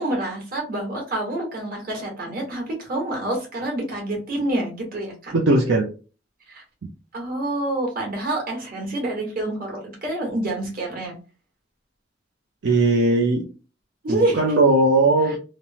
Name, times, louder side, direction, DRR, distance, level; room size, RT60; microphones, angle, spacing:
voice 1, 0.0-5.3 6.5-6.6 7.1-11.2 14.0-14.4 15.3-15.4, right 1 dB, 50° right, 0 dB, 1.3 m, -27 dB
voice 2, 5.3-5.9 12.6-13.5 14.1-15.4, right 2 dB, 70° right, 0 dB, 0.5 m, -18 dB
3.1 x 2.0 x 2.7 m, 0.34 s
head